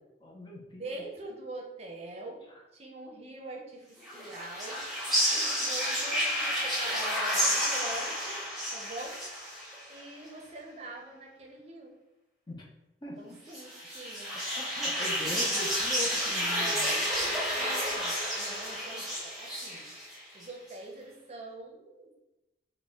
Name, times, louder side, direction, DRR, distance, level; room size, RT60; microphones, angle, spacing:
voice 1, 0.2-1.0 2.5-2.6 12.5-12.7 13.0-13.4 14.3-16.9, left 2 dB, 25° left, -1 dB, 0.6 m, -41 dB
voice 2, 0.8-2.4 2.7-8.4 8.7-9.2 9.9-11.9 13.2-14.3 15.2-15.6 16.5-17.0 17.5-19.9 20.3-22.1, right 2 dB, 35° right, 0 dB, 0.6 m, -44 dB
sound 1, 4.0-10.0 13.5-20.4, equal, ahead, 0.9 m, -31 dB
4.1 x 2.2 x 3.6 m, 0.98 s
head